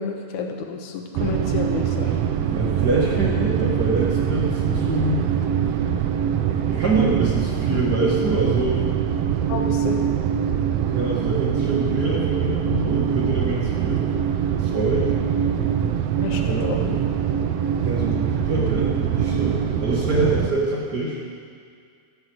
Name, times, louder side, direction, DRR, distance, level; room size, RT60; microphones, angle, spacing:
voice 1, 0.0-2.2 9.5-10.0 16.2-17.0, left 5 dB, 90° left, 3 dB, 2.5 m, -30 dB
sound 1, 1.1-20.5, right 9 dB, 75° right, 1.5 m, -23 dB
voice 2, 2.5-5.2 6.7-8.9 10.9-14.1 14.6-15.1 16.3-16.7 17.7-21.2, right 2 dB, 40° right, -4 dB, 1.8 m, -25 dB
11.5 x 7.8 x 7.9 m, 2.2 s
omnidirectional pair, 3.4 m